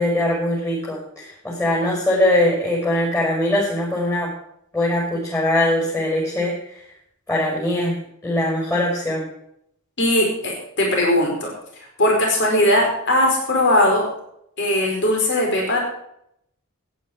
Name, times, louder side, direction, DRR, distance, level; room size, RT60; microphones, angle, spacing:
voice 1, 0.0-4.3 4.7-6.5 7.3-8.0 8.2-9.2, left 1 dB, 15° left, -4 dB, 5.8 m, -21 dB
voice 2, 10.0-11.5 12.0-14.1 14.6-15.8, left 1 dB, 55° left, 0 dB, 4.9 m, -19 dB
16.5 x 10.0 x 5.0 m, 0.74 s
head